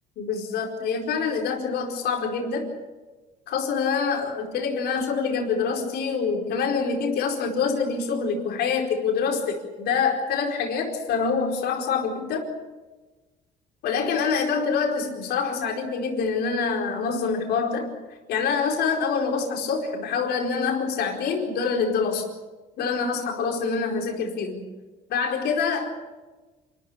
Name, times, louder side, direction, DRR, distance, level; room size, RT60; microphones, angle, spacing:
voice 1, 0.2-2.7 3.5-12.5 13.8-17.9 18.3-22.3 22.8-24.6 25.1-25.9, left 5 dB, 75° left, 1 dB, 4.6 m, -26 dB
27.5 x 14.0 x 10.0 m, 1.2 s
cardioid pair, 110°, 17 cm